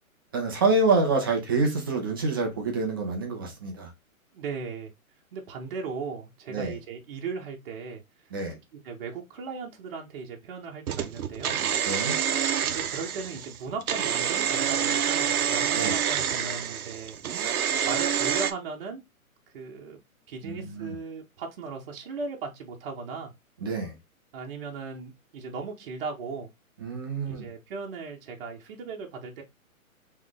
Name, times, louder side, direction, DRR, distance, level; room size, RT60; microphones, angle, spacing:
voice 1, 0.3-3.9 6.5-6.8 8.3-8.6 11.9-12.1 15.7-16.0 20.4-20.9 23.6-23.9 26.8-27.5, right 3 dB, 15° right, 0.5 m, -27 dB
voice 2, 4.3-4.9 5.3-8.0 8.7-11.6 12.6-19.0 19.5-20.0 20.3-23.3 24.3-26.5 27.3-29.4, right 4 dB, 40° right, 1.0 m, -37 dB
sound 1, 10.9-18.5, right 8 dB, 85° right, 0.7 m, -27 dB
3.7 x 3.2 x 3.5 m
hypercardioid pair, 155°, 43 cm